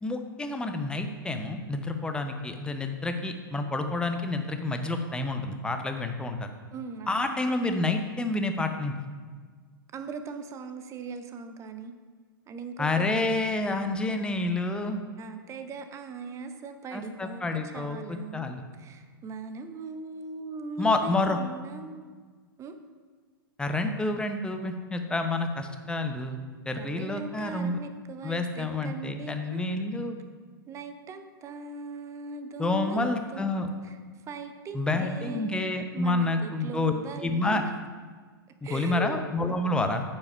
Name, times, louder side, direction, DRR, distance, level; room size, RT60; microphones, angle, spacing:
voice 1, 0.0-6.5 7.1-8.9 12.8-15.0 16.9-18.6 20.8-21.4 23.6-26.4 26.7-27.8 28.2-30.2 32.6-33.7 34.7-36.9 37.2-37.6 38.6-40.0, left 2 dB, 5° left, 6 dB, 0.7 m, -29 dB
voice 2, 6.7-7.2 9.9-11.9 12.5-13.2 15.2-22.1 22.6-22.8 26.7-29.8 30.7-34.0 34.3-37.7 38.6-39.2, right 4 dB, 25° right, 8 dB, 0.8 m, -40 dB
9.3 x 5.4 x 5.5 m, 1.5 s
figure-of-eight pair, 105°, 12 cm